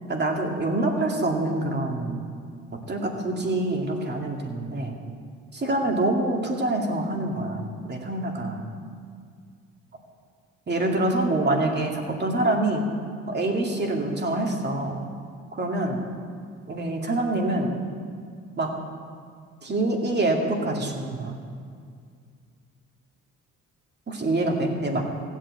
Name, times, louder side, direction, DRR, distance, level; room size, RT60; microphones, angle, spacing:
voice 1, 0.1-2.2 2.9-5.0 5.5-8.6 10.7-12.9 13.3-15.0 15.5-16.0 16.7-17.8 18.6-18.7 19.6-21.4 24.1-25.0, right 2 dB, 35° right, 1 dB, 2.4 m, -26 dB
15.5 x 8.3 x 8.2 m, 2.2 s
cardioid pair, 90°, 30 cm